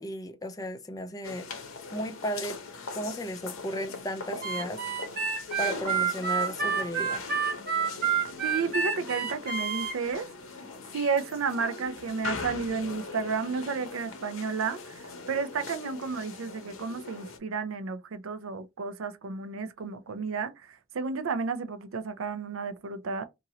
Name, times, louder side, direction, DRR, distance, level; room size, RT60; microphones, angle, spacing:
voice 1, 0.0-1.5 1.9-2.6 2.9-4.8 5.6-7.2, equal, 15° left, 0.4 m, -34 dB
sound 1, 1.2-17.4, left 4 dB, 80° left, 0.8 m, -41 dB
Harmonica, 4.4-9.9, right 6 dB, 45° right, 0.8 m, -29 dB
voice 2, 8.4-10.3 10.9-23.3, right 5 dB, 75° right, 0.5 m, -32 dB
2.9 x 2.6 x 2.7 m
head